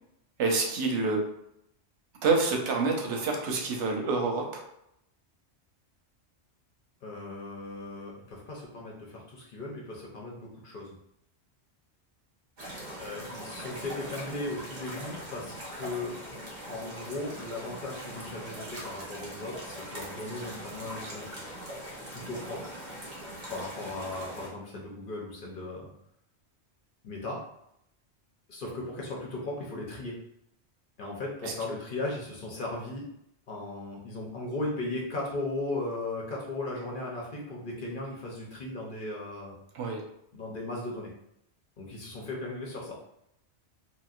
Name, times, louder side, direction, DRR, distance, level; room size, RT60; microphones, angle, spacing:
voice 1, 0.4-1.3 2.2-4.7 31.4-31.5 39.7-40.0, right 3 dB, 90° right, 2 dB, 1.0 m, -27 dB
voice 2, 7.0-10.9 13.0-16.1 16.7-21.3 22.1-22.8 23.5-25.9 27.0-27.4 28.5-30.2 31.0-33.1 33.5-39.6 40.3-41.1 41.8-43.0, left 2 dB, 55° left, -2 dB, 0.8 m, -37 dB
sound 1, 12.6-24.5, equal, 45° right, 0.9 m, -41 dB
4.0 x 2.0 x 2.4 m, 0.77 s
omnidirectional pair, 1.2 m